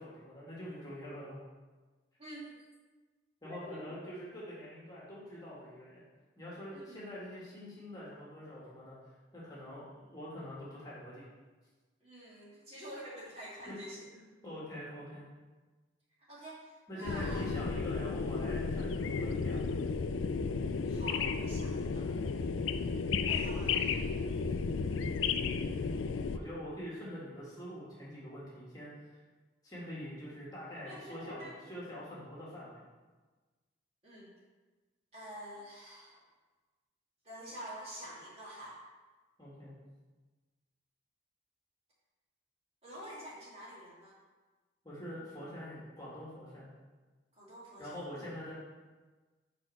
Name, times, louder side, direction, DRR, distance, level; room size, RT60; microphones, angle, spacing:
voice 1, 0.0-1.4 3.4-6.0 6.4-9.0 9.3-11.3 13.7-13.8 14.4-15.3 16.9-19.6 26.3-29.2 29.6-32.8 39.4-39.8 44.8-46.7 47.7-48.5, equal, 20° left, -7 dB, 1.9 m, -45 dB
voice 2, 2.2-2.5 3.4-4.0 6.7-7.0 12.0-14.1 16.3-17.5 17.7-17.8 20.9-22.1 22.3-22.4 23.3-24.1 26.0-26.8 30.8-31.5 34.0-34.3 35.1-36.2 37.2-38.8 42.8-44.2 47.3-48.0, right 1 dB, 30° right, -7 dB, 2.2 m, -48 dB
sound 1, 17.0-26.4, left 5 dB, 90° left, 0.4 m, -33 dB
6.2 x 4.5 x 6.4 m, 1.3 s
head